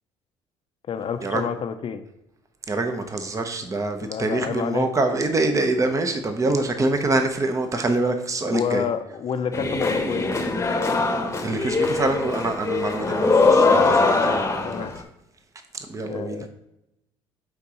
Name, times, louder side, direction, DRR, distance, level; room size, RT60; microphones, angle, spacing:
voice 1, 0.9-2.0 4.0-4.9 8.5-10.4 14.1-14.9 16.0-16.5, left 7 dB, 50° left, 9 dB, 0.6 m, -29 dB
voice 2, 2.7-8.8 11.4-14.9 15.9-16.5, right 2 dB, 25° right, 6 dB, 0.9 m, -25 dB
sound 1, 9.5-15.0, left 3 dB, 25° left, 1.0 m, -21 dB
9.0 x 3.7 x 3.0 m, 0.86 s
supercardioid pair, 70°, 12 cm